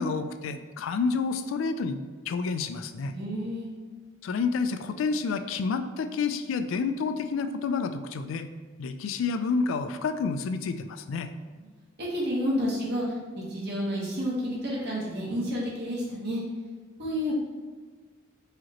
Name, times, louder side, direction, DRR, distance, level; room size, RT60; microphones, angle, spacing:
voice 1, 0.0-3.1 4.2-8.5 8.8-11.3, left 4 dB, 70° left, 10 dB, 0.3 m, -29 dB
voice 2, 3.0-3.7 12.0-13.0 13.3-16.4 17.0-17.3, equal, 55° right, -6 dB, 1.1 m, -30 dB
4.8 x 3.0 x 2.9 m, 1.4 s
head